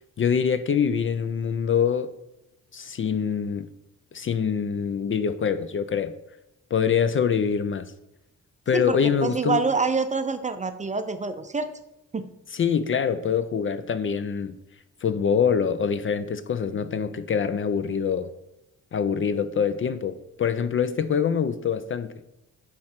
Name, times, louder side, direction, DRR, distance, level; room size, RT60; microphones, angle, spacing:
voice 1, 0.2-2.1 2.7-3.7 4.1-6.1 6.7-7.9 8.7-9.6 12.5-14.6 15.0-18.3 18.9-22.1, left 7 dB, 40° left, 0.4 m, -24 dB
voice 2, 8.7-11.7 12.1-12.3, right 4 dB, 20° right, 0.5 m, -26 dB
9.4 x 3.2 x 4.4 m
cardioid pair, 90°, 33 cm